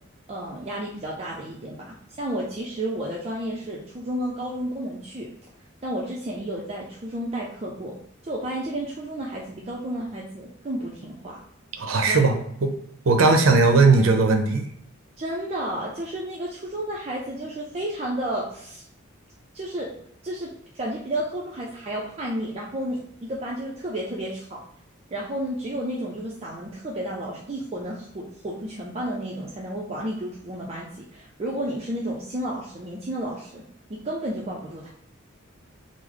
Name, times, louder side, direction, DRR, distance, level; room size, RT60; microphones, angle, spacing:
voice 1, 0.3-5.3 5.8-7.9 8.2-11.4 12.1-12.4 13.2-13.4 15.2-18.8 19.5-19.9 20.2-24.6 25.1-33.6 33.9-34.9, right 1 dB, 30° right, -3 dB, 0.5 m, -32 dB
voice 2, 11.8-12.7 13.1-14.7, right 3 dB, 90° right, 5 dB, 0.6 m, -18 dB
3.1 x 2.0 x 3.7 m, 0.70 s
head